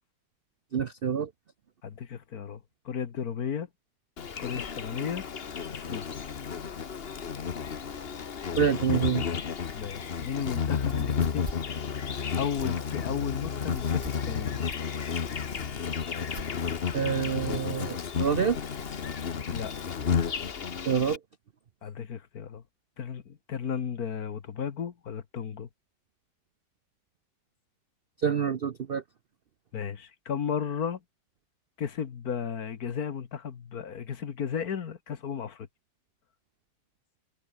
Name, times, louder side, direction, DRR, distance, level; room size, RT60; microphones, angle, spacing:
voice 1, 0.7-1.3 8.6-9.3 16.9-18.6 20.9-21.2 28.2-29.0, right 7 dB, 55° right, 0.6 m, -27 dB
voice 2, 1.8-3.7 4.4-5.2 5.7-6.1 9.7-11.5 12.4-14.6 19.5-19.7 21.8-22.6 23.0-25.7 29.7-31.0 31.8-35.7, left 7 dB, 60° left, 1.8 m, -34 dB
Insect, 4.2-21.2, left 6 dB, 40° left, 1.2 m, -32 dB
sound 1, 10.9-18.1, right 1 dB, 35° right, 7.2 m, -46 dB
omnidirectional pair, 1.8 m